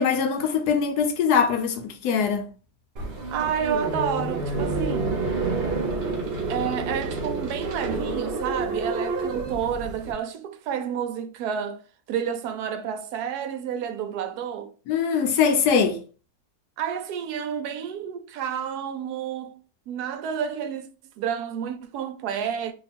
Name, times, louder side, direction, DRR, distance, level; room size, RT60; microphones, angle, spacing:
voice 1, 0.0-2.5 14.9-16.0, left 6 dB, 70° left, 1.2 m, -22 dB
sound 1, 3.0-10.1, right 3 dB, 45° right, 0.9 m, -29 dB
voice 2, 3.3-5.2 6.5-11.8 12.1-14.7 16.8-19.6 19.9-20.9 21.2-22.7, right 8 dB, 70° right, 1.0 m, -30 dB
3.0 x 2.3 x 4.1 m
omnidirectional pair, 1.9 m